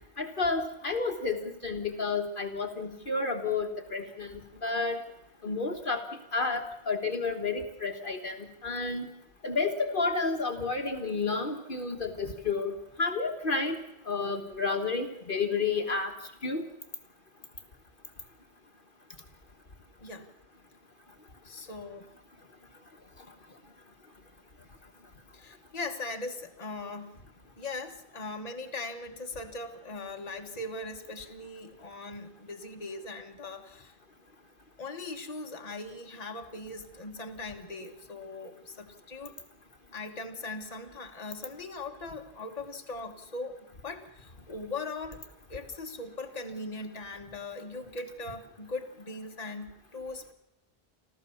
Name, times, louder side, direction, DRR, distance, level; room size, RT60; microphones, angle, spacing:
voice 1, 0.2-5.0 5.4-6.0 6.3-9.1 9.4-13.8 14.0-16.1 16.4-16.6, left 4 dB, 50° left, 4 dB, 1.7 m, -31 dB
voice 2, 21.4-22.1 25.3-27.2 27.6-34.0 34.8-39.3 39.9-45.2 45.5-50.3, left 3 dB, 35° left, 3 dB, 1.6 m, -40 dB
28.5 x 13.5 x 7.1 m, 0.87 s
omnidirectional pair, 1.1 m